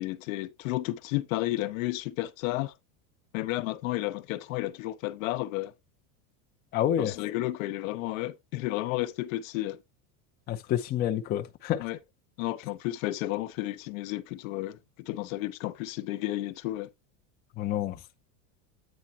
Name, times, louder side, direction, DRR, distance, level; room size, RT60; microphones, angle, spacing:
voice 1, 0.0-2.7 3.3-5.7 7.0-9.8 11.8-12.0 12.4-16.9, left 17 dB, 65° left, 0.9 m, -32 dB
voice 2, 6.7-7.1 10.5-11.8 17.6-18.0, left 11 dB, 25° left, 0.5 m, -28 dB
8.9 x 3.6 x 4.1 m
supercardioid pair, 160°, 43 cm